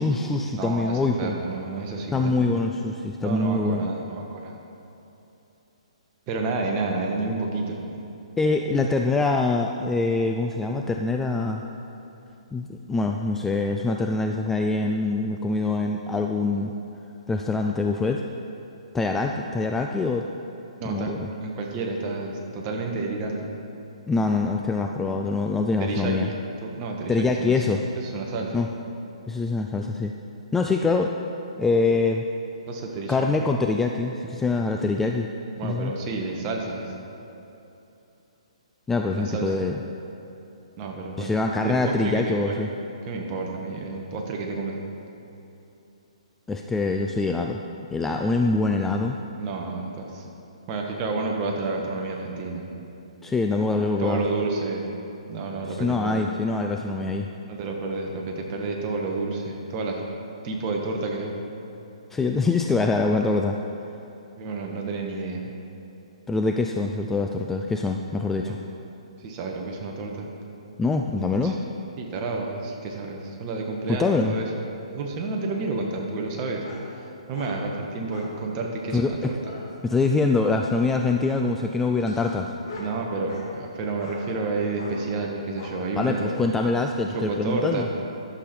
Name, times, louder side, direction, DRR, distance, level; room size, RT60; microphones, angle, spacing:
voice 1, 0.0-1.4 2.1-3.8 8.4-11.6 12.5-16.7 17.3-18.2 18.9-20.3 20.9-21.3 24.1-26.3 27.1-27.8 28.5-28.7 29.3-30.1 30.5-31.1 31.6-32.2 33.1-35.3 35.6-35.9 38.9-39.8 41.2-42.7 46.5-47.6 47.9-49.2 53.2-54.2 55.7-57.3 62.1-63.6 66.3-68.6 70.8-71.6 73.9-74.4 78.9-79.3 79.8-82.5 86.0-87.9, left 3 dB, 10° left, 3 dB, 0.3 m, -24 dB
voice 2, 0.5-2.5 3.2-4.5 6.3-7.8 20.8-23.5 25.8-26.3 26.6-27.5 27.9-28.6 32.7-33.3 35.6-36.9 39.1-39.6 40.8-41.3 41.6-42.6 43.1-44.8 49.4-50.2 50.7-52.7 54.0-54.9 55.3-56.2 57.5-60.0 60.4-61.4 64.4-65.4 68.4-68.6 69.2-70.3 71.4-71.5 72.0-74.5 74.9-76.6 77.3-79.4 82.8-86.3 87.1-87.9, right 3 dB, 30° right, 0 dB, 1.4 m, -30 dB
sound 1, 76.6-76.9 77.3-77.6 78.1-78.4 78.9-79.7 80.7-81.3 82.0-83.5 84.0-84.2 84.8-85.0 85.6-85.8, left 2 dB, 50° left, 2.1 m, -42 dB
11.5 x 6.9 x 4.4 m, 2.9 s
hypercardioid pair, 140°, 4 cm